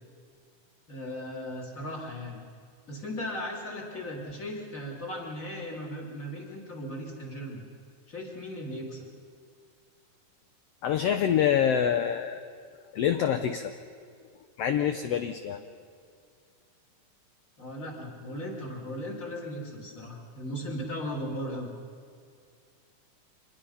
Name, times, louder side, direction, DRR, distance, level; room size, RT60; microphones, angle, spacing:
voice 1, 0.9-2.4 2.9-7.7 8.1-9.1 15.5-15.6 17.6-21.7, equal, 25° left, -1 dB, 3.5 m, -37 dB
voice 2, 10.8-12.4 12.9-13.7 14.6-15.6, left 9 dB, 80° left, 8 dB, 1.4 m, -26 dB
26.0 x 20.5 x 5.7 m, 2.2 s
omnidirectional pair, 3.7 m